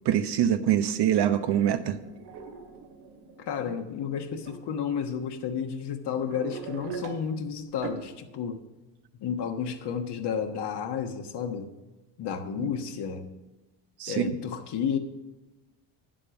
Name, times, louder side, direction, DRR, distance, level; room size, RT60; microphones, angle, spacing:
voice 1, 0.0-2.0 12.6-12.7 14.0-14.4, right 10 dB, 55° right, 10 dB, 1.0 m, -24 dB
sound 1, 1.4-3.8 4.4-4.7 5.4-5.5 6.0-7.4 7.7-8.0, right 5 dB, 75° right, 2.2 m, -41 dB
voice 2, 3.4-8.6 9.1-11.7 12.2-13.3 14.1-15.0, left 7 dB, 55° left, 6 dB, 1.4 m, -32 dB
9.8 x 7.7 x 5.9 m, 1.1 s
cardioid pair, 100°, 48 cm